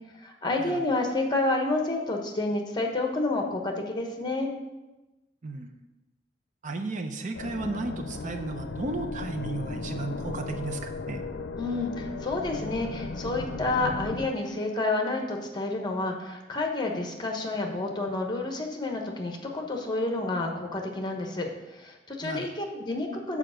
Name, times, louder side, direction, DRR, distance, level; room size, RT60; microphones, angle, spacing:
voice 1, 0.2-4.5 11.6-23.4, left 2 dB, 25° left, 2 dB, 1.1 m, -29 dB
voice 2, 5.4-5.8 6.6-11.2 22.2-22.5, right 2 dB, 45° right, 6 dB, 0.6 m, -34 dB
sound 1, 7.3-14.3, left 3 dB, 85° left, 0.5 m, -36 dB
6.8 x 4.9 x 6.4 m, 1.0 s
head